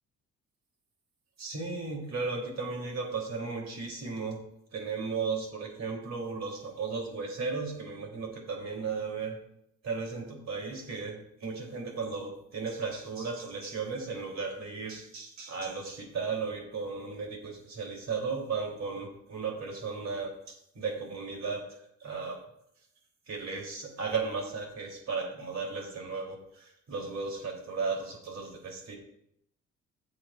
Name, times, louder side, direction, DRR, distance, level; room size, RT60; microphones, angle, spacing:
voice 1, 1.4-4.4 4.7-9.4 9.8-21.6 22.0-22.4 23.3-29.0, right 4 dB, 60° right, 0 dB, 3.3 m, -35 dB
15.5 x 7.6 x 2.5 m, 0.75 s
cardioid pair, 90°, 30 cm